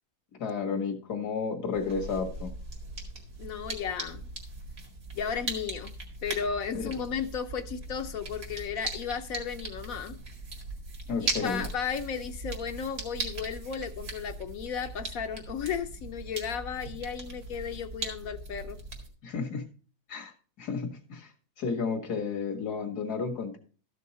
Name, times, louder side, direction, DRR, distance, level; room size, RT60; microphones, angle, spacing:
voice 1, 0.4-2.5 6.7-6.9 11.1-11.6 19.2-19.7 20.1-20.3 20.6-21.3 21.6-23.6, left 5 dB, 85° left, 2.2 m, -32 dB
sound 1, 1.7-19.1, right 3 dB, 75° right, 2.7 m, -39 dB
voice 2, 3.4-4.2 5.1-5.9 6.2-10.2 11.2-18.8, left 7 dB, 70° left, 1.1 m, -34 dB
13.5 x 6.5 x 4.1 m
omnidirectional pair, 1.6 m